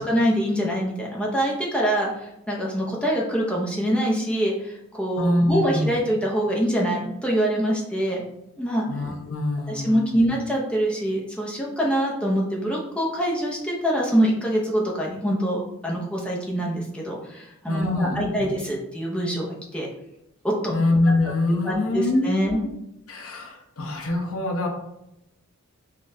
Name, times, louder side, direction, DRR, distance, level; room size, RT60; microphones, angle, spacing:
voice 1, 0.0-8.2 8.6-8.9 9.7-19.9 20.4-20.8 21.5-22.6, equal, 5° left, -4 dB, 0.6 m, -24 dB
voice 2, 5.2-6.0 8.9-10.3 17.7-18.5 20.7-22.7 23.1-24.7, left 2 dB, 80° left, 1 dB, 0.8 m, -24 dB
3.9 x 3.2 x 2.6 m, 0.85 s
head